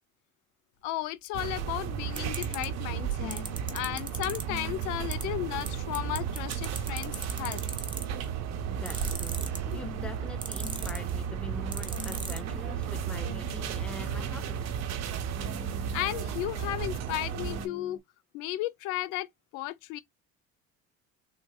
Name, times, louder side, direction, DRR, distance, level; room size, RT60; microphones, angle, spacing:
sound 1, 0.7-18.0, left 6 dB, 50° left, 1.6 m, -48 dB
voice 1, 0.8-3.5 3.7-7.6 9.6-9.8 15.9-18.0 18.3-20.0, left 15 dB, 90° left, 0.6 m, -34 dB
sound 2, 1.3-17.7, right 8 dB, 60° right, 0.9 m, -34 dB
sound 3, 2.2-2.6 3.3-4.4 5.1-5.2 5.7-5.8 5.9-8.2 8.9-9.7 10.4-11.1 11.7-12.4, right 4 dB, 15° right, 0.8 m, -36 dB
voice 2, 8.7-14.7, left 2 dB, 5° left, 0.4 m, -44 dB
3.8 x 2.7 x 2.2 m
cardioid pair, 120°, 30 cm